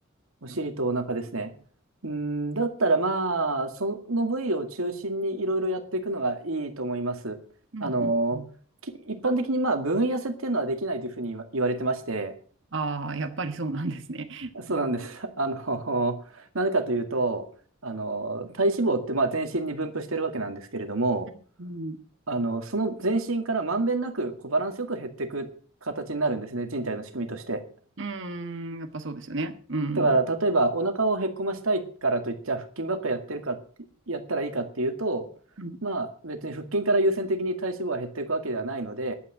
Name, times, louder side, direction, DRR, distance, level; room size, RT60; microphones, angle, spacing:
voice 1, 0.4-1.5 2.0-7.4 7.8-8.4 8.8-12.3 14.5-17.4 17.8-21.3 22.3-25.5 25.8-27.6 30.0-33.6 34.1-35.3 35.8-39.1, right 2 dB, 80° right, 6 dB, 2.1 m, -27 dB
voice 2, 7.7-8.5 12.7-14.5 21.6-22.0 28.0-30.2 35.6-35.8, right 3 dB, 60° right, 8 dB, 1.4 m, -33 dB
11.0 x 9.1 x 7.7 m, 0.43 s
head